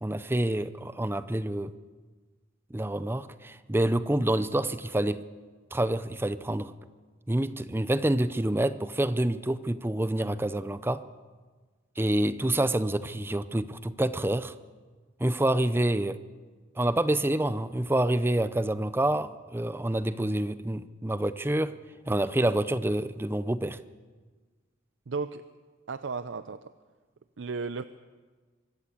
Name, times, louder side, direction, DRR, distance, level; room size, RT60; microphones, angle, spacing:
voice 1, 0.0-1.7 2.7-5.3 5.7-6.7 7.3-11.0 12.0-14.5 15.2-16.2 16.8-21.7 22.1-23.8, right 1 dB, 10° right, 14 dB, 0.6 m, -27 dB
voice 2, 25.1-25.4 25.9-26.7 27.4-27.8, right 4 dB, 65° right, 12 dB, 0.5 m, -34 dB
24.0 x 13.5 x 8.4 m, 1.4 s
head